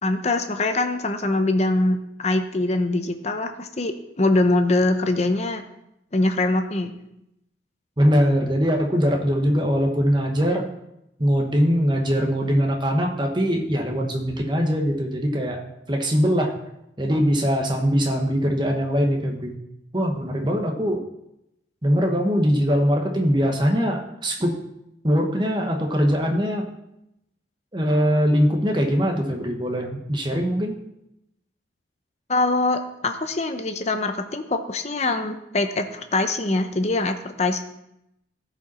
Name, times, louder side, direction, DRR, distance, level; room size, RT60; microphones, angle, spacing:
voice 1, 0.0-5.6 6.1-6.9 32.3-37.6, left 2 dB, 35° left, 7 dB, 0.7 m, -23 dB
voice 2, 8.0-10.6 11.2-15.6 15.9-16.5 17.0-19.6 19.9-21.0 21.8-24.6 25.0-26.6 27.7-30.7, equal, 25° right, 2 dB, 1.2 m, -22 dB
15.0 x 5.3 x 4.2 m, 0.84 s
head